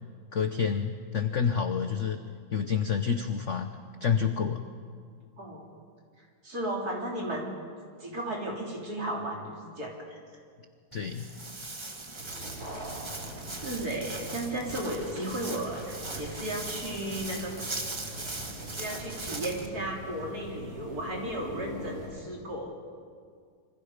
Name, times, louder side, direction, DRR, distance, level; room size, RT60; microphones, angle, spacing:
voice 1, 0.3-2.2 2.5-3.7 4.0-4.6 10.9-11.3, left 6 dB, 60° left, 7 dB, 0.7 m, -28 dB
voice 2, 6.4-7.5 8.0-10.2 13.5-17.8 18.6-22.7, right 1 dB, 40° right, -2 dB, 4.2 m, -35 dB
Walk footsteps, 10.9-19.7, right 2 dB, 20° right, 0.7 m, -40 dB
sound 1, 12.2-22.1, equal, 90° right, 7.1 m, -43 dB
27.0 x 25.5 x 5.1 m, 2.1 s
omnidirectional pair, 2.4 m